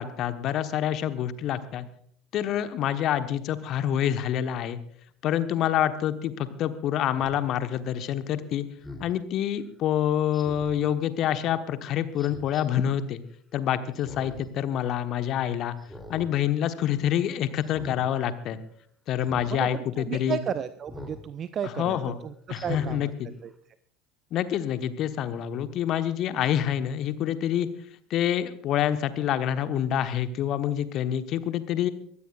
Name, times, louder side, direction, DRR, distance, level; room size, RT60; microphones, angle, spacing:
voice 1, 0.0-1.9 2.3-4.8 5.2-8.7 9.0-13.2 13.5-15.7 16.1-18.6 19.1-20.4 21.6-22.2 22.5-23.3 24.3-27.7 28.1-31.9, left 10 dB, 45° left, 11 dB, 1.1 m, -27 dB
Speech synthesizer, 7.2-7.4 8.8-9.1 10.3-10.8 12.2-12.6 13.9-14.5 14.9-15.0 15.8-16.3 16.7-17.0 17.6-18.0 19.2-19.5 20.9-21.2 21.7-21.8 22.5-23.0 23.5-23.6, left 1 dB, ahead, 3.0 m, -42 dB
voice 2, 19.5-22.0 22.2-22.3 22.6-23.1 23.4-23.5, right 8 dB, 35° right, 13 dB, 0.6 m, -33 dB
23.0 x 17.0 x 2.4 m, 0.63 s
figure-of-eight pair, 70°, 0 cm